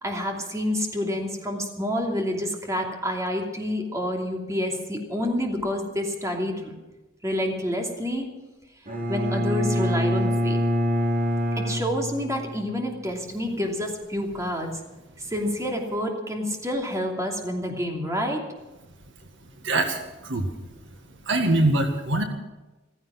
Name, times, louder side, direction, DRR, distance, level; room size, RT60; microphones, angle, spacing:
voice 1, 0.0-6.7 7.2-8.3 9.1-10.6 11.6-14.7 15.3-18.4, equal, 15° right, 1 dB, 2.9 m, -28 dB
Bowed string instrument, 8.9-12.7, equal, 45° right, 5.0 m, -25 dB
voice 2, 19.6-20.0 20.3-20.5 21.3-22.2, right 2 dB, 65° right, 5 dB, 1.8 m, -22 dB
15.5 x 15.5 x 6.0 m, 1.1 s
head